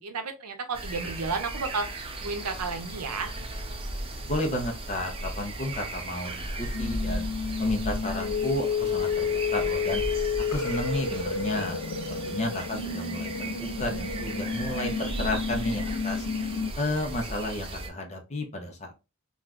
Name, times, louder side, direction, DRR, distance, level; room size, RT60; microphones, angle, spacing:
voice 1, 0.0-3.3, right 4 dB, 90° right, 6 dB, 0.6 m, -32 dB
sound 1, 0.7-17.9, right 1 dB, 25° right, 0.5 m, -36 dB
voice 2, 4.3-7.3 7.6-10.0 10.4-11.8 12.1-16.3 16.8-18.9, left 1 dB, 30° left, 2 dB, 0.7 m, -32 dB
sound 2, 6.7-16.7, left 5 dB, 75° left, 0.4 m, -31 dB
3.1 x 2.4 x 2.4 m, 0.28 s
head